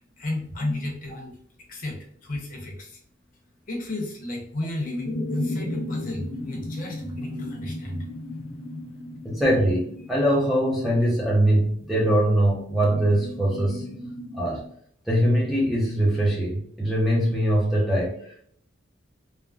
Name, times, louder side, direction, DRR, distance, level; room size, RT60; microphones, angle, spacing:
voice 1, 0.0-1.3 1.7-3.0 3.7-8.0, left 2 dB, 40° left, -1 dB, 0.7 m, -33 dB
sound 1, 5.0-11.9 12.8-14.7, left 1 dB, 80° left, 0.6 m, -35 dB
voice 2, 9.2-13.9 14.3-14.6 15.1-18.5, right 1 dB, ahead, -5 dB, 0.4 m, -22 dB
3.2 x 2.1 x 2.4 m, 0.63 s
head